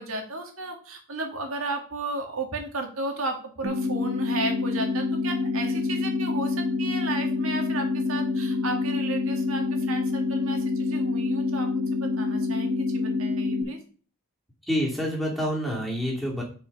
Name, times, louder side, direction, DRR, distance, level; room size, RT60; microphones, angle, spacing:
voice 1, 0.0-13.8, right 2 dB, 80° right, 3 dB, 2.1 m, -34 dB
sound 1, 3.6-13.6, left 3 dB, 60° right, 3.9 m, -27 dB
voice 2, 14.7-16.4, equal, ahead, -3 dB, 2.6 m, -27 dB
8.5 x 5.3 x 5.3 m, 0.40 s
head